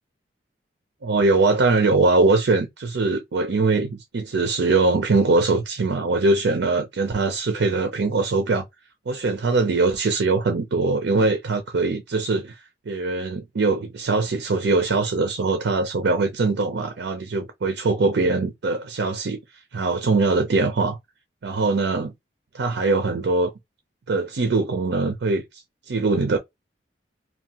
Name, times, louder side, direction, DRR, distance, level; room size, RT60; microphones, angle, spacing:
voice 1, 1.0-8.6 9.1-19.4 19.7-21.0 21.4-22.1 22.5-23.5 24.1-26.4, right 3 dB, 75° right, 0.5 m, -22 dB
2.8 x 2.2 x 2.8 m
head